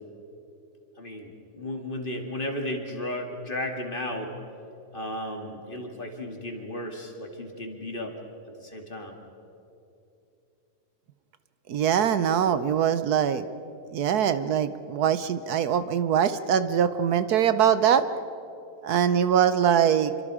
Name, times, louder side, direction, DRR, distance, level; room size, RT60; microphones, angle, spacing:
voice 1, 1.0-4.3 4.9-8.1 8.6-9.1, left 1 dB, 30° left, 2 dB, 2.5 m, -34 dB
voice 2, 11.7-13.4 13.9-18.0 18.8-20.1, right 8 dB, 70° right, 12 dB, 1.2 m, -23 dB
27.5 x 24.5 x 4.9 m, 2.9 s
omnidirectional pair, 1.7 m